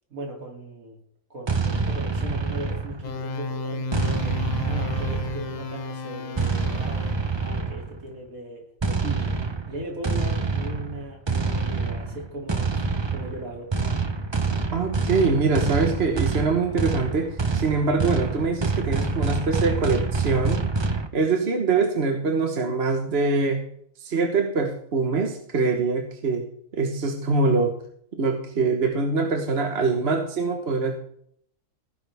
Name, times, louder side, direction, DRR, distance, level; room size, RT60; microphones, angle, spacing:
voice 1, 0.1-1.0 1.3-9.4 9.7-13.7, right 1 dB, 60° right, 0 dB, 3.3 m, -38 dB
sound 1, 1.5-3.2 3.9-5.6 6.4-8.0 8.8-21.1, right 4 dB, 25° right, 0.6 m, -26 dB
sound 2, 3.0-7.5, left 2 dB, 45° left, 0.5 m, -33 dB
voice 2, 14.7-20.7 21.1-23.6 24.0-26.5 26.7-27.8 28.1-30.9, right 4 dB, 45° right, 4 dB, 1.4 m, -24 dB
16.5 x 10.5 x 3.5 m, 0.66 s
omnidirectional pair, 1.6 m